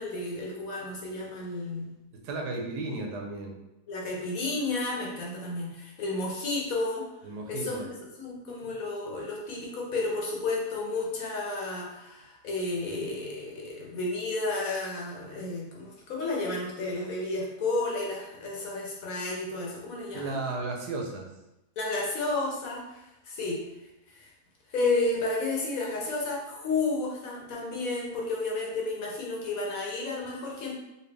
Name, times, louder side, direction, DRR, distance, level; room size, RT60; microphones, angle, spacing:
voice 1, 0.0-1.9 3.9-7.0 7.5-7.9 8.2-20.4 21.8-23.6 24.1-24.3 24.7-30.7, left 2 dB, 65° left, -2 dB, 1.2 m, -32 dB
voice 2, 2.1-3.6 7.2-7.9 8.6-8.7 20.1-21.3, right 3 dB, 90° right, 1 dB, 1.3 m, -34 dB
4.1 x 2.3 x 3.3 m, 0.91 s
omnidirectional pair, 1.7 m